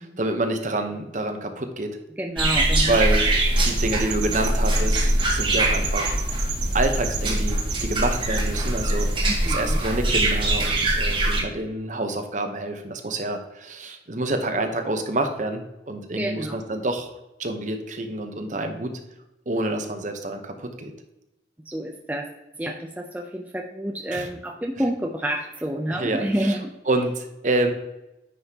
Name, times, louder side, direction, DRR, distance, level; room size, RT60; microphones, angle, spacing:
voice 1, 0.0-1.9 2.9-3.2 3.6-6.4 6.7-9.1 9.4-17.1 17.4-18.9 19.5-20.9 24.1-24.3 25.9-26.6 26.9-27.7, right 2 dB, 45° right, 6 dB, 0.9 m, -27 dB
voice 2, 2.2-3.0 9.2-9.8 16.2-16.6 21.7-22.3 22.6-26.7, right 1 dB, 10° right, 2 dB, 0.5 m, -29 dB
sound 1, 2.4-11.4, right 1 dB, 30° right, 1.4 m, -23 dB
sound 2, 3.5-9.2, right 4 dB, 80° right, 1.0 m, -32 dB
9.5 x 5.5 x 2.9 m, 0.95 s
head